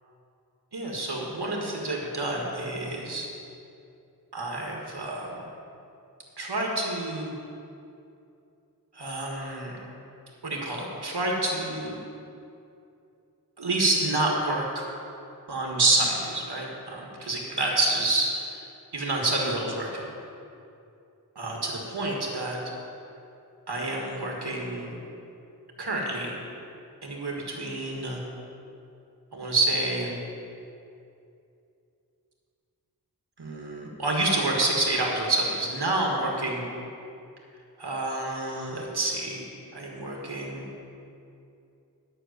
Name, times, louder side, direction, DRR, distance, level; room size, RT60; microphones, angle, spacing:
voice 1, 0.7-3.3 4.3-5.4 6.4-7.3 8.9-9.7 10.4-12.0 13.6-14.8 15.5-18.7 18.9-20.1 21.4-22.6 23.7-25.0 25.8-26.3 27.0-28.2 29.3-30.2 33.4-36.7 37.8-39.4 39.7-40.7, right 2 dB, 85° right, -1 dB, 1.8 m, -28 dB
10.0 x 6.4 x 7.4 m, 2.6 s
wide cardioid pair, 55°, 39 cm